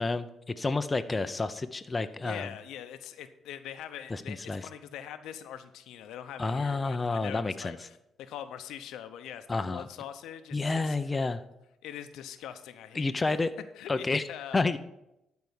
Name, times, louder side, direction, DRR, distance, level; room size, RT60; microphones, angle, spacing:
voice 1, 0.0-2.5 4.1-4.7 6.4-7.8 9.5-9.9 10.5-11.4 12.9-13.5 13.9-14.2 14.5-14.8, left 3 dB, 25° left, 9 dB, 0.6 m, -29 dB
voice 2, 2.2-11.0 11.8-13.2 13.8-14.8, left 10 dB, 85° left, 10 dB, 0.8 m, -43 dB
12.0 x 4.7 x 7.1 m, 0.87 s
cardioid pair, 90°, 0 cm